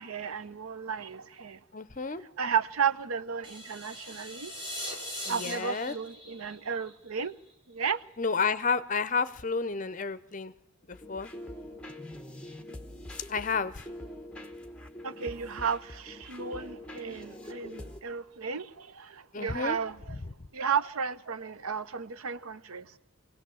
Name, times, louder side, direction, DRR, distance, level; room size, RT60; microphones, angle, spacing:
voice 1, 0.0-1.6 2.4-4.5 5.3-7.3 7.7-8.0 15.0-20.2 20.5-22.9, right 6 dB, 90° right, 0.7 m, -33 dB
voice 2, 1.7-2.2 5.3-5.9 8.2-10.5 10.9-11.3 13.3-13.7 19.3-19.8, left 5 dB, 35° left, 0.7 m, -30 dB
sound 1, 3.4-7.5, equal, 25° right, 3.9 m, -41 dB
sound 2, 10.9-18.0, left 1 dB, 5° left, 1.1 m, -44 dB
25.5 x 17.0 x 7.8 m
head